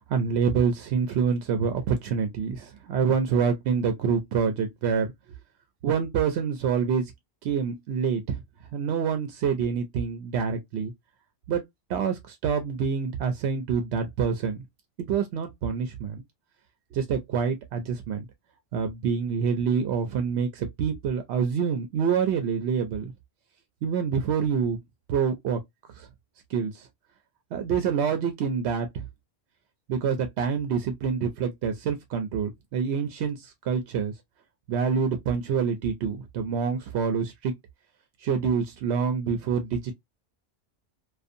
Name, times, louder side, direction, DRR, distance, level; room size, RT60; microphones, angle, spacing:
voice 1, 0.0-5.1 5.8-7.1 7.4-8.4 8.7-10.9 11.5-11.6 11.9-14.7 15.0-16.2 16.9-18.3 18.7-23.1 23.8-24.8 25.1-25.6 26.0-26.1 26.5-26.9 27.5-29.0 29.9-34.1 34.7-37.5 38.2-39.9, right 6 dB, 90° right, 0.8 m, -26 dB
2.5 x 2.3 x 2.5 m
omnidirectional pair, 1.1 m